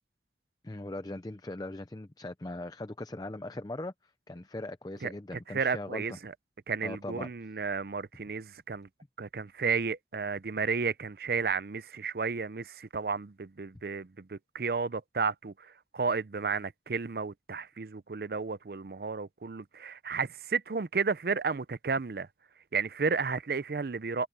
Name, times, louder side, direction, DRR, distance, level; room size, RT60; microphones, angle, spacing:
voice 1, 0.6-3.9 4.3-6.0 6.8-7.3, left 2 dB, 20° left, 0.5 m, -39 dB
voice 2, 5.0-6.3 6.7-8.9 9.2-22.3 22.7-24.3, right 5 dB, 55° right, 0.5 m, -32 dB
head